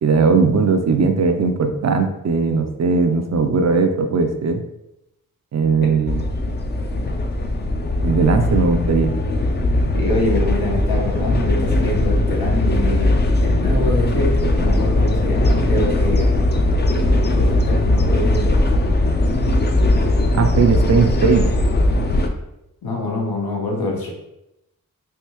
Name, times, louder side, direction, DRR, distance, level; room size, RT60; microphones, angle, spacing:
voice 1, 0.0-4.6 5.5-6.3 8.0-9.1 20.3-21.5, right 4 dB, 50° right, 6 dB, 0.4 m, -18 dB
sound 1, 6.1-22.3, left 1 dB, 30° left, 0.4 m, -19 dB
voice 2, 9.9-16.6 17.3-18.7 22.8-24.1, left 2 dB, 90° left, -1 dB, 0.9 m, -25 dB
3.4 x 2.6 x 2.9 m, 0.86 s
cardioid pair, 60°, 35 cm